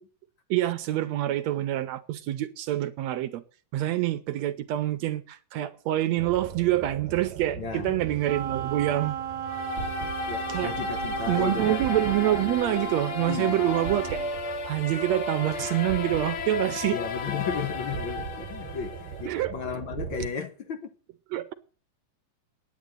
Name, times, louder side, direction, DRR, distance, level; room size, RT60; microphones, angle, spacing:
voice 1, 0.5-3.4 3.7-9.2 10.5-10.7 11.3-14.2 14.7-17.0 19.3-19.5 21.3-21.5, right 14 dB, 70° right, 1.8 m, -26 dB
sound 1, 6.2-20.3, right 8 dB, 90° right, 2.5 m, -40 dB
voice 2, 7.6-8.0 10.3-11.8 13.3-13.6 16.9-20.9, left 6 dB, 70° left, 1.1 m, -34 dB
Wind instrument woodwind instrument, 8.2-14.3, right 8 dB, 50° right, 1.4 m, -35 dB
sound 2, 9.4-19.4, left 5 dB, 55° left, 1.7 m, -34 dB
9.7 x 9.6 x 9.0 m
omnidirectional pair, 3.7 m